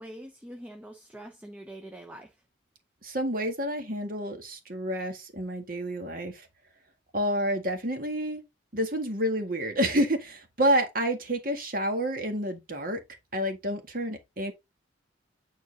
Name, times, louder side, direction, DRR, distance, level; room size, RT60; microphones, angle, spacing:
voice 1, 0.0-2.3, right 1 dB, 10° right, 0.8 m, -44 dB
voice 2, 3.0-6.5 7.1-8.4 8.7-13.0 13.3-14.5, equal, 45° right, 1.8 m, -29 dB
9.3 x 4.0 x 3.9 m
head